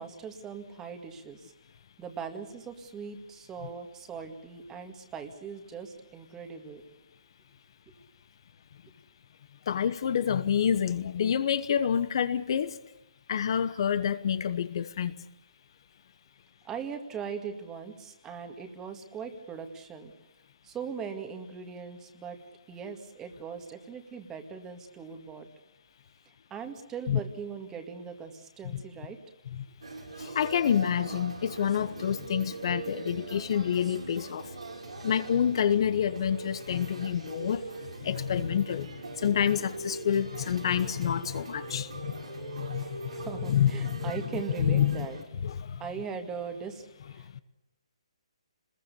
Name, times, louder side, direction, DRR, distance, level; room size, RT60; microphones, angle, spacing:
voice 1, 0.0-1.5 2.0-6.9 7.9-8.0 16.6-20.1 20.6-22.4 22.7-25.5 26.5-29.2 43.0-45.2 45.8-47.4, right 6 dB, 10° right, 2.0 m, -40 dB
voice 2, 9.7-12.7 13.3-15.1 27.1-27.2 28.7-28.8 29.5-29.6 30.2-34.5 35.0-37.6 38.0-38.9 39.2-42.9 43.2-44.0 44.6-45.1 45.4-45.8, left 8 dB, 50° left, 1.0 m, -28 dB
sound 1, 29.8-45.2, right 3 dB, 90° right, 5.8 m, -42 dB
26.5 x 21.0 x 6.9 m
hypercardioid pair, 160°, 3 cm